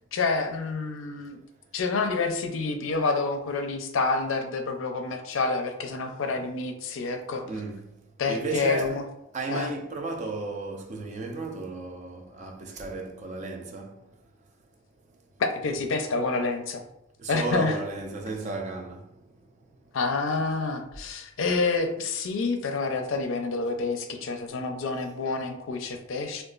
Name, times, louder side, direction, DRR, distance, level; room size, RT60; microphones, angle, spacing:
voice 1, 0.1-1.4 1.7-7.4 8.2-9.0 9.5-9.7 15.4-16.8 17.3-17.8 19.9-26.4, left 3 dB, 70° left, 0.4 m, -28 dB
voice 2, 7.5-7.9 8.3-9.0 9.3-14.0 17.2-19.0, right 3 dB, 35° right, 0.4 m, -33 dB
3.8 x 2.3 x 2.4 m
head